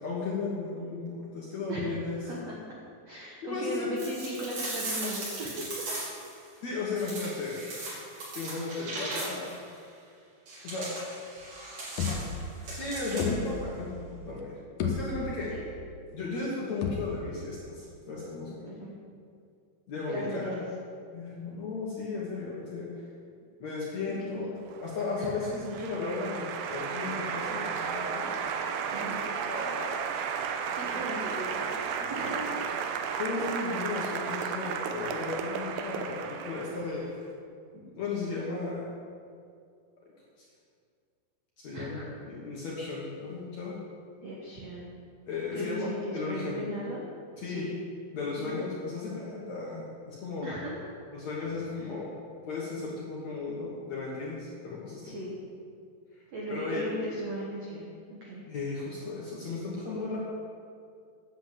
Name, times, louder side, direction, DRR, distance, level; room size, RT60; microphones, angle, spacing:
voice 1, 0.0-2.2 3.4-3.9 6.6-7.6 8.4-9.6 10.6-10.9 12.7-15.5 16.1-18.8 19.9-20.6 21.1-23.0 23.6-24.5 24.8-28.4 29.2-30.1 30.9-31.2 32.0-32.4 33.2-37.1 37.7-38.8 40.4-40.5 41.6-43.8 45.3-46.6 47.4-47.6 48.1-50.5 51.1-52.1 52.5-55.2 56.5-56.8 58.5-60.2, left 3 dB, 60° left, -5 dB, 2.0 m, -35 dB
voice 2, 2.1-2.6 3.1-5.9 15.5-15.6 18.6-19.0 20.1-20.6 24.2-24.5 25.2-25.5 28.9-29.2 30.7-32.8 41.7-42.1 44.2-44.9 45.5-47.0 47.4-47.8 48.4-48.6 50.4-50.9 55.0-55.4 56.3-58.4, equal, 70° right, -4 dB, 1.6 m, -38 dB
sound 1, 4.0-6.3 7.0-9.6 10.5-13.5, right 2 dB, 50° right, 4.4 m, -38 dB
sound 2, 11.4-11.5 12.0-12.7 13.2-14.0 14.4-14.5 14.8-15.6 16.8-17.5, left 5 dB, 80° left, 1.8 m, -33 dB
Applause, 24.7-37.1, right 6 dB, 90° right, 2.1 m, -34 dB
10.0 x 7.8 x 7.5 m, 2.3 s
omnidirectional pair, 5.0 m